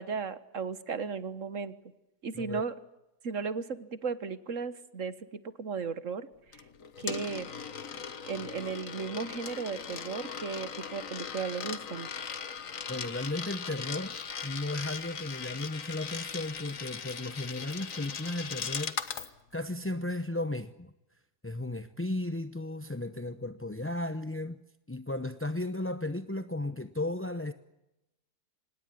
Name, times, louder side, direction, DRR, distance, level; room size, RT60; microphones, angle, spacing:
voice 1, 0.0-1.7 2.2-2.7 3.2-6.3 7.0-7.5 8.3-12.1, right 5 dB, 50° right, 1.7 m, -35 dB
Coin (dropping), 6.5-19.3, left 6 dB, 55° left, 1.7 m, -39 dB
voice 2, 12.9-20.9 21.4-27.5, left 2 dB, 15° left, 0.5 m, -35 dB
26.0 x 20.0 x 9.8 m
omnidirectional pair, 1.7 m